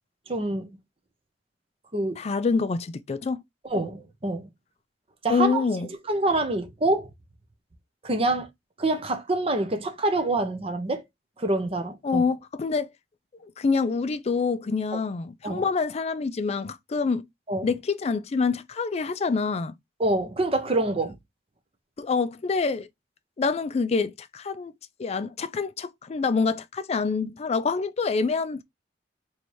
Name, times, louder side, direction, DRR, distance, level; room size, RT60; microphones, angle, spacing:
voice 1, 0.3-0.7 1.9-2.2 3.6-4.5 5.2-5.7 6.1-7.1 8.0-8.5 8.8-11.0 11.4-12.2 14.9-15.0 15.4-15.6 17.5-17.7 20.0-21.2, right 2 dB, 35° right, 0.8 m, -26 dB
voice 2, 2.2-3.4 5.3-5.9 12.0-12.9 13.4-17.3 17.6-19.7 22.0-22.9 23.4-24.7 25.0-28.6, left 4 dB, 35° left, 0.4 m, -26 dB
3.1 x 2.8 x 4.6 m
head